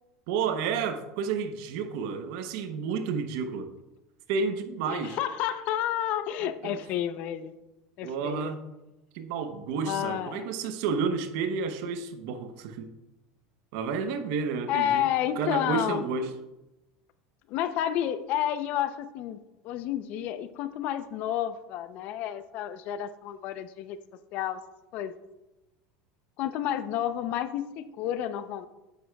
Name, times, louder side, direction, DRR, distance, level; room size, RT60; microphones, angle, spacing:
voice 1, 0.3-3.7 4.3-5.2 6.4-6.8 8.0-8.7 9.1-12.9 13.7-15.1 15.4-16.3, right 5 dB, 70° right, 8 dB, 0.9 m, -31 dB
voice 2, 4.9-7.5 8.0-8.5 9.9-10.4 14.7-16.0 17.5-19.4 19.6-24.0 24.3-24.6 24.9-25.1 26.4-28.7, left 11 dB, 55° left, 12 dB, 0.6 m, -30 dB
9.3 x 8.6 x 2.3 m, 0.97 s
supercardioid pair, 110°, 3 cm